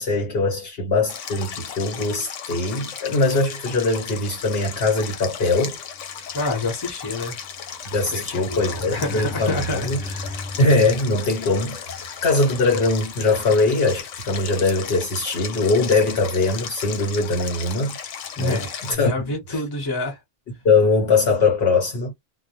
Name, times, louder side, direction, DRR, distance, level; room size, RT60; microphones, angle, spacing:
voice 1, 0.0-5.8 7.8-10.0 10.6-11.8 12.2-18.0 18.4-19.6 20.6-22.1, left 3 dB, 55° left, 1.0 m, -21 dB
Stream, 1.1-18.9, left 8 dB, 85° left, 0.9 m, -35 dB
sound 1, 5.9-14.7 15.1-15.3 15.6-15.7 15.9-16.2, left 1 dB, 5° right, 0.7 m, -39 dB
voice 2, 6.3-7.4 8.1-10.4 12.1-12.2 18.4-20.2, left 2 dB, 20° left, 0.8 m, -28 dB
2.1 x 2.1 x 2.8 m
omnidirectional pair, 1.3 m